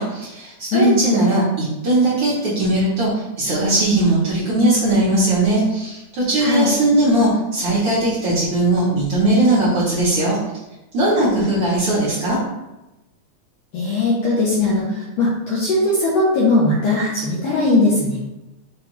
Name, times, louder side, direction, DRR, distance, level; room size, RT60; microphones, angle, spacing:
voice 1, 0.0-10.4 10.9-12.4, right 1 dB, 65° right, -9 dB, 1.4 m, -19 dB
voice 2, 0.7-1.0 6.4-6.7 13.7-18.2, left 2 dB, 75° left, -6 dB, 1.5 m, -19 dB
5.3 x 2.3 x 3.0 m, 0.99 s
omnidirectional pair, 3.6 m